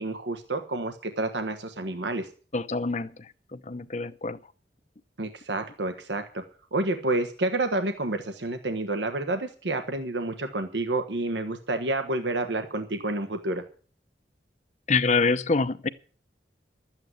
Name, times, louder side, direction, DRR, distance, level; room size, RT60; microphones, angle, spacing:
voice 1, 0.0-2.3 5.2-6.4 6.7-13.6, right 2 dB, 85° right, 1.3 m, -29 dB
voice 2, 2.5-3.1 3.5-4.4 14.9-15.9, left 4 dB, 40° left, 0.8 m, -25 dB
12.5 x 8.9 x 7.9 m
head